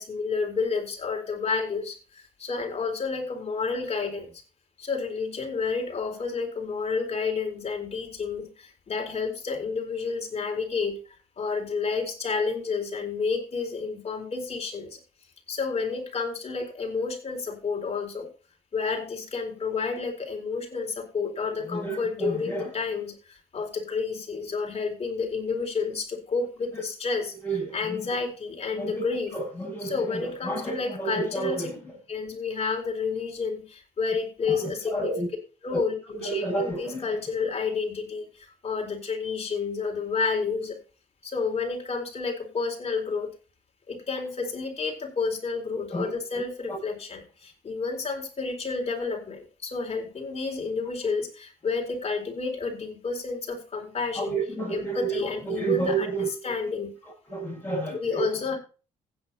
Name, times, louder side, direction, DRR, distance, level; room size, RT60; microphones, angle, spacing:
voice 1, 0.0-4.3 4.8-11.0 11.4-15.0 15.5-18.3 18.7-29.4 29.8-31.8 32.1-35.2 35.6-40.8 41.2-43.3 43.9-54.4 54.7-56.9 57.9-58.6, left 4 dB, 45° left, 2 dB, 4.3 m, -30 dB
voice 2, 21.7-22.7 27.4-27.7 28.8-28.9 29.3-29.9 30.5-31.7 34.9-35.3 36.3-37.0 45.9-46.1 54.2-55.1 55.5-56.3 57.3-58.2, right 3 dB, 15° left, -8 dB, 7.4 m, -29 dB
16.0 x 9.5 x 2.7 m, 0.34 s
supercardioid pair, 60°, 15 cm